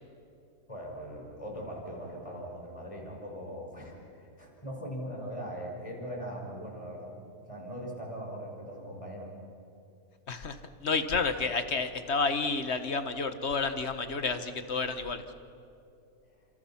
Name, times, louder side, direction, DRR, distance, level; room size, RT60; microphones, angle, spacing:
voice 1, 0.7-7.1 7.5-9.3, equal, 20° left, -1 dB, 5.7 m, -40 dB
voice 2, 10.3-15.2, left 4 dB, 45° left, 9 dB, 1.5 m, -30 dB
30.0 x 27.0 x 5.9 m, 2.6 s
omnidirectional pair, 1.7 m